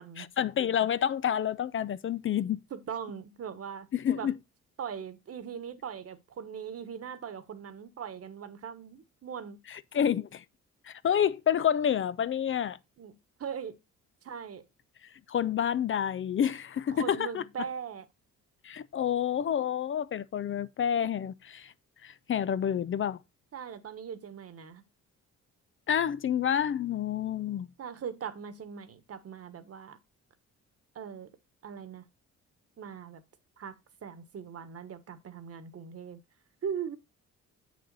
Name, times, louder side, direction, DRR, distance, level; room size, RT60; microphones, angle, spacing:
voice 1, 0.2-2.6 3.9-4.4 9.7-10.4 10.9-12.8 15.3-17.4 18.6-21.7 22.0-23.2 25.9-27.7, left 9 dB, 45° left, 0.5 m, -29 dB
voice 2, 2.7-3.9 4.2-4.3 4.8-9.6 13.0-13.1 13.4-13.8 14.2-14.6 16.9-18.1 23.5-24.8 27.8-30.0 30.9-31.3 31.6-32.0 32.8-33.2 33.6-33.7 34.0-36.2 36.6-37.0, right 7 dB, 50° right, 1.3 m, -40 dB
7.7 x 6.4 x 4.0 m
cardioid pair, 90°, 30 cm